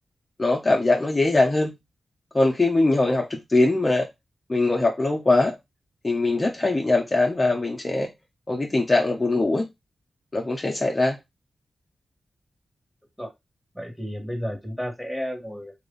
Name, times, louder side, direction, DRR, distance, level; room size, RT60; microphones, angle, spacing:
voice 1, 0.4-1.7 2.3-4.1 4.5-5.5 6.0-8.1 8.5-9.6 10.3-11.2, left 2 dB, 35° left, 0.8 m, -21 dB
voice 2, 13.7-15.7, equal, 5° right, 1.5 m, -32 dB
3.0 x 2.5 x 3.8 m
cardioid pair, 50°, 0 cm